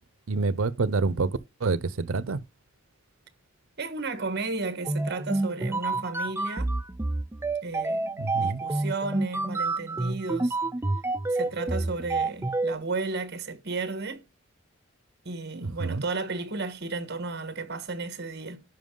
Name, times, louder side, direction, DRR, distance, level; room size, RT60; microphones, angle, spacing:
voice 1, 0.3-2.4 8.2-8.6 15.5-16.0, right 3 dB, 85° right, 0.6 m, -27 dB
voice 2, 3.8-6.7 7.6-10.6 11.3-14.3 15.2-18.6, right 3 dB, 55° right, 1.3 m, -33 dB
sound 1, 4.8-12.7, right 2 dB, 10° right, 0.4 m, -28 dB
10.5 x 5.5 x 3.7 m
head